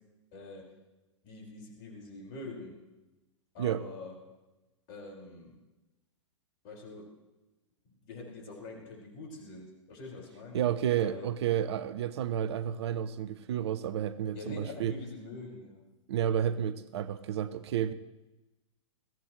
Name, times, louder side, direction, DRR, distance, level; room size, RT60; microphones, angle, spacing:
voice 1, 0.3-0.7 1.2-2.8 3.5-4.2 4.9-5.5 6.6-7.1 7.9-10.6 11.0-11.3 14.3-15.8, left 2 dB, 45° left, 0 dB, 5.5 m, -45 dB
voice 2, 10.5-14.9 16.1-17.9, right 10 dB, 55° right, 15 dB, 0.8 m, -31 dB
21.5 x 16.0 x 3.2 m, 1.1 s
figure-of-eight pair, 105°, 16 cm